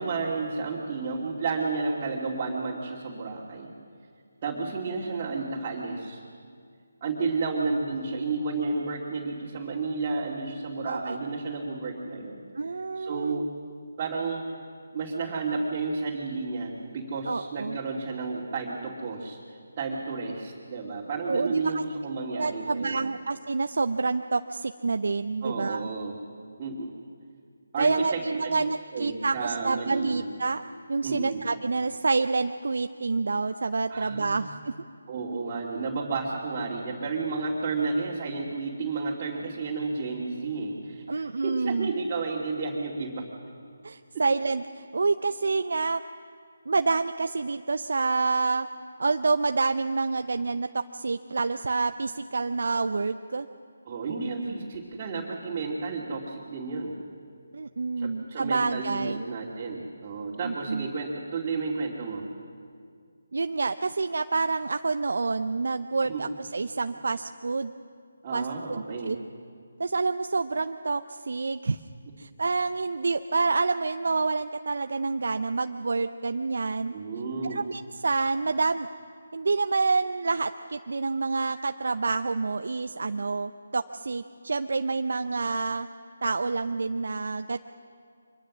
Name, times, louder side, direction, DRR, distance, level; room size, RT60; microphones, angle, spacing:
voice 1, 0.0-3.7 4.4-6.2 7.0-12.4 12.9-13.5 14.0-14.5 14.9-19.4 19.8-23.2 25.4-26.2 26.6-26.9 27.7-28.6 28.9-30.2 31.0-31.4 33.9-34.4 35.1-43.3 53.9-57.0 58.0-62.2 66.1-66.3 68.2-69.1 76.9-77.6, right 4 dB, 30° right, -4 dB, 2.7 m, -32 dB
voice 2, 10.9-11.2 12.5-13.5 17.3-17.8 21.3-21.8 22.3-25.9 27.8-30.6 30.9-34.7 41.1-41.9 43.8-46.0 46.7-48.7 49.0-53.5 57.5-59.2 60.4-60.9 63.3-67.7 68.3-69.2 69.8-71.8 72.2-76.9 77.4-78.9 79.3-85.9 86.2-87.6, right 3 dB, 65° right, 9 dB, 0.6 m, -28 dB
24.5 x 21.0 x 6.3 m, 2.2 s
figure-of-eight pair, 155°, 0 cm